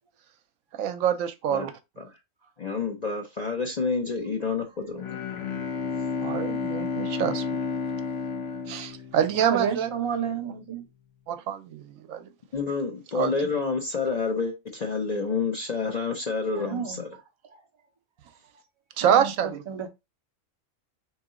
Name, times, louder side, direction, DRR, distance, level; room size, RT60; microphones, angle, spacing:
voice 1, 0.7-1.7 6.2-7.4 8.7-9.9 11.3-12.3 13.1-13.3 19.0-19.6, right 9 dB, 80° right, 1.0 m, -26 dB
voice 2, 2.6-5.2 12.5-17.1, left 4 dB, 45° left, 0.5 m, -29 dB
Bowed string instrument, 4.9-9.8, left 5 dB, 70° left, 1.0 m, -31 dB
voice 3, 9.3-10.8 16.6-17.0 19.0-19.9, right 7 dB, 35° right, 0.4 m, -31 dB
3.8 x 3.0 x 3.6 m
omnidirectional pair, 1.4 m